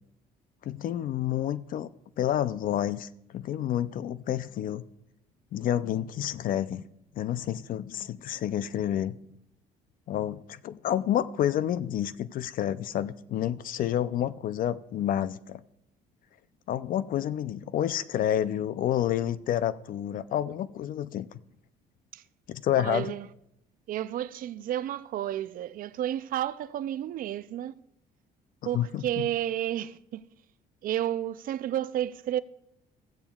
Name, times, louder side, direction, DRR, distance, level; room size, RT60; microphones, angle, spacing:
voice 1, 0.6-1.9 2.2-4.8 5.5-6.8 7.1-9.2 10.1-15.6 16.7-21.4 22.5-23.2 28.7-29.3, left 11 dB, 55° left, 0.5 m, -29 dB
voice 2, 22.8-23.3 23.9-27.7 28.6-30.2 30.8-32.4, right 12 dB, 55° right, 0.4 m, -31 dB
15.0 x 8.7 x 2.3 m
cardioid pair, 110°, 17 cm